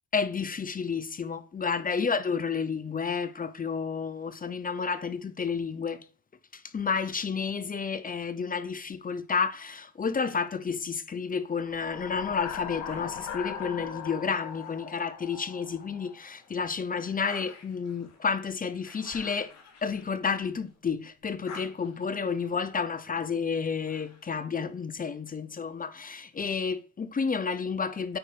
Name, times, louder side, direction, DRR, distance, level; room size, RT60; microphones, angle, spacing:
voice 1, 0.1-6.0 6.5-19.5 19.8-28.2, left 5 dB, 30° left, 0.7 m, -31 dB
sound 1, 11.6-16.3, left 8 dB, 90° left, 2.1 m, -39 dB
sound 2, 12.8-15.5 16.0-20.8 21.2-24.5, left 4 dB, 60° left, 3.1 m, -52 dB
8.9 x 5.2 x 3.3 m
cardioid pair, 90°, 30 cm